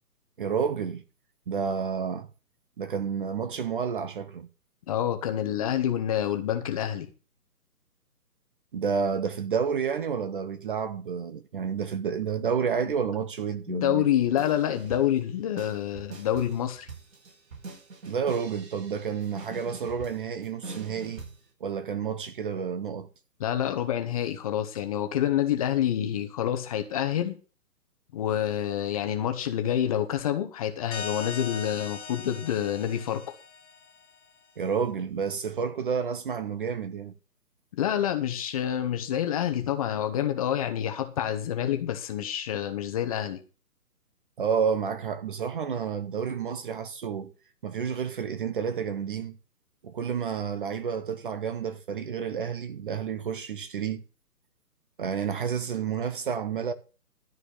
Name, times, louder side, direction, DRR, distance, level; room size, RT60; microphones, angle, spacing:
voice 1, 0.4-1.0 1.5-2.3 2.8-4.5 8.7-14.1 18.0-21.2 21.6-23.1 34.6-37.1 44.4-47.3 47.6-49.4 49.8-54.0 55.0-56.7, right 6 dB, 35° right, 1.0 m, -30 dB
voice 2, 4.9-7.1 13.7-16.9 23.4-27.3 28.1-33.3 37.7-43.4, left 10 dB, 20° left, 1.1 m, -27 dB
sound 1, 14.4-15.2 15.6-21.4, right 4 dB, 55° right, 5.9 m, -43 dB
sound 2, 30.9-34.3, left 5 dB, 45° left, 2.1 m, -40 dB
13.0 x 4.6 x 8.6 m
figure-of-eight pair, 140°, 48 cm